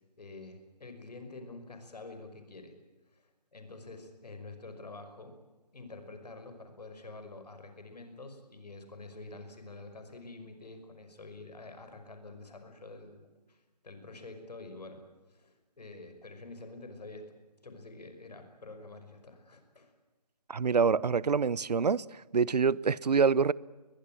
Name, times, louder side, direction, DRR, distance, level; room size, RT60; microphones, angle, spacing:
voice 1, 0.2-2.7 3.1-5.3 5.7-15.0 15.3-17.4 17.6-19.9, left 3 dB, 70° left, 5.5 m, -47 dB
voice 2, 20.5-22.0 22.3-23.5, right 5 dB, 75° right, 0.8 m, -26 dB
23.0 x 20.5 x 8.9 m
figure-of-eight pair, 160°, 21 cm